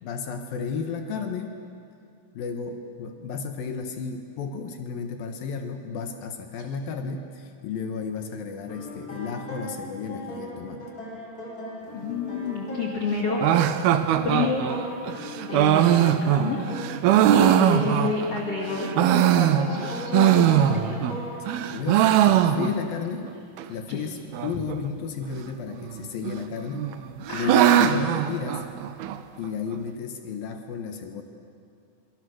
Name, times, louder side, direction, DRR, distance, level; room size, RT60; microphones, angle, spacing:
voice 1, 0.0-1.6 2.3-10.8 21.4-23.3 23.6-26.9 27.3-28.6 29.4-31.2, left 6 dB, 65° left, 5 dB, 2.8 m, -33 dB
sound 1, 8.7-21.5, left 1 dB, 20° left, 4.8 m, -38 dB
voice 2, 11.9-13.4 14.2-14.7 15.5-16.6 17.3-21.0 23.9-24.0 27.3-27.8, left 4 dB, 45° left, -1 dB, 2.5 m, -29 dB
sound 2, 13.4-18.4 18.8-21.2 21.5-23.0 23.3-23.4 23.6-23.7 24.3-24.8 25.8-26.4 26.8-29.2, right 11 dB, 80° right, 2.5 m, -21 dB
26.0 x 24.5 x 6.5 m, 2.4 s
omnidirectional pair, 4.8 m